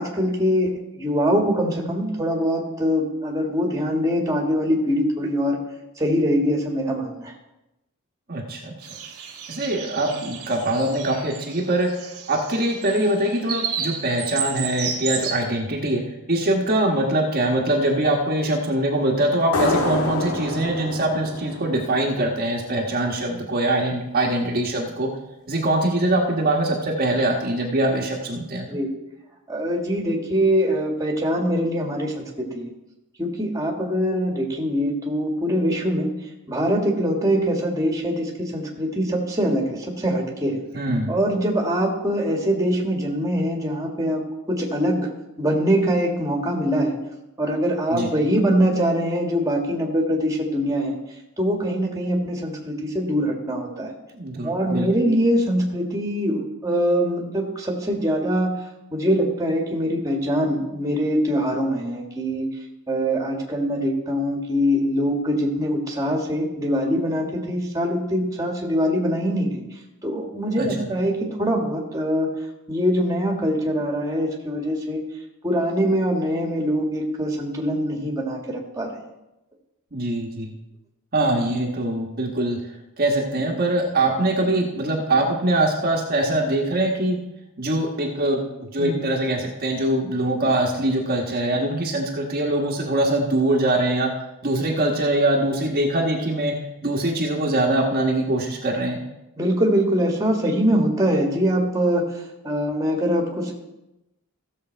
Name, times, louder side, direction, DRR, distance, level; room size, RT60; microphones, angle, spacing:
voice 1, 0.0-5.6 6.0-7.3 28.7-28.9 29.5-32.7 33.2-36.1 36.5-40.6 41.1-44.2 44.5-45.1 45.4-47.0 47.4-51.0 51.4-54.0 54.4-58.5 58.9-62.5 62.9-69.6 70.0-72.3 72.7-75.0 75.4-79.0 88.8-89.0 99.4-102.0 102.4-103.5, equal, 15° right, 0 dB, 1.7 m, -23 dB
voice 2, 8.3-8.9 9.5-11.9 12.3-16.0 16.3-25.1 25.5-28.8 40.7-41.1 47.9-48.1 54.1-54.9 70.6-70.9 79.9-80.5 81.1-82.6 83.0-87.2 87.6-94.1 94.4-96.5 96.8-99.0, right 1 dB, 45° right, -1 dB, 1.3 m, -23 dB
sound 1, 8.8-15.4, right 7 dB, 90° right, 1.8 m, -32 dB
sound 2, 19.5-22.8, left 2 dB, 80° left, 1.6 m, -27 dB
15.5 x 7.0 x 4.5 m, 0.93 s
head